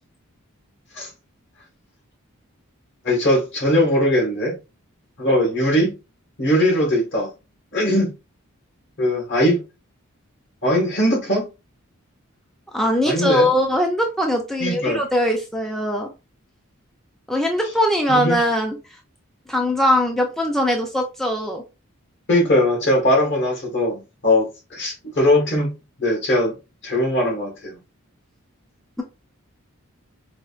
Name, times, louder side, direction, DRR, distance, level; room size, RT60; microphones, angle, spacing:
voice 1, 3.0-4.5 5.2-5.9 6.4-7.3 7.7-8.1 9.0-9.6 10.6-11.4 13.0-13.5 14.6-15.0 18.1-18.4 22.3-25.7 26.0-26.5 26.8-27.8, left 1 dB, 55° left, 1.6 m, -20 dB
voice 2, 12.7-16.1 17.3-18.8 19.5-21.6, left 1 dB, ahead, 0.4 m, -21 dB
4.9 x 2.4 x 2.4 m
head